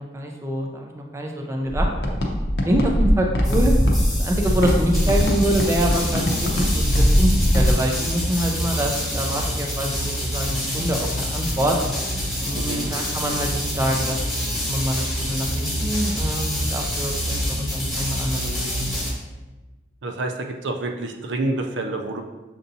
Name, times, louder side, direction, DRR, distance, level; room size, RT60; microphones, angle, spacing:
voice 1, 0.0-1.9 2.6-3.7 4.2-11.8 12.4-18.9, right 1 dB, 15° right, 1 dB, 0.4 m, -26 dB
sound 1, 1.7-7.7, equal, 65° left, 0.7 m, -20 dB
sound 2, 3.4-19.1, equal, ahead, 1.2 m, -27 dB
voice 2, 12.5-12.9 20.0-22.2, right 2 dB, 80° right, 4 dB, 0.5 m, -28 dB
6.7 x 2.7 x 2.6 m, 1.2 s
head